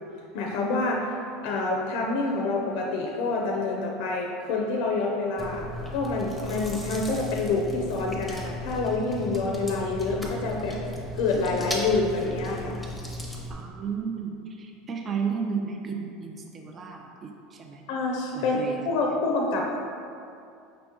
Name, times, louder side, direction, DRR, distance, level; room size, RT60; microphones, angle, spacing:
voice 1, 0.3-1.2 1.4-10.8 11.1-12.8 17.9-19.8, left 3 dB, 65° left, 0 dB, 0.5 m, -27 dB
Chewing mastication, 5.4-13.5, left 1 dB, ahead, 0.7 m, -36 dB
voice 2, 13.5-17.8 18.3-18.8, right 6 dB, 30° right, 2 dB, 0.4 m, -33 dB
5.0 x 2.9 x 3.5 m, 2.5 s
supercardioid pair, 120°, 0 cm